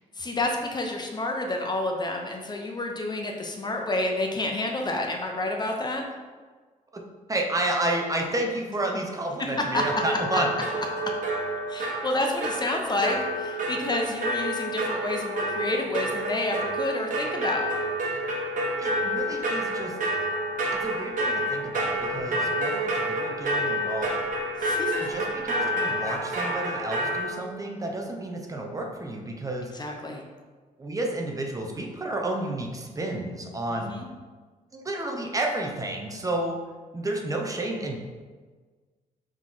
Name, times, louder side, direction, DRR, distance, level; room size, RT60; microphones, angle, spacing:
voice 1, 0.2-6.0 9.7-9.8 10.3-10.4 11.7-17.7 22.1-22.5 24.6-25.0 29.7-30.2 33.7-34.1, left 2 dB, 30° left, 2 dB, 0.6 m, -29 dB
voice 2, 7.3-10.5 18.8-19.9 20.8-24.1 25.0-29.7 30.8-33.9 34.7-36.6 36.9-38.0, right 1 dB, 25° right, 1 dB, 0.7 m, -31 dB
sound 1, 9.7-27.2, right 1 dB, 65° right, 1.2 m, -29 dB
4.1 x 3.1 x 3.7 m, 1.4 s
cardioid pair, 85°, 15 cm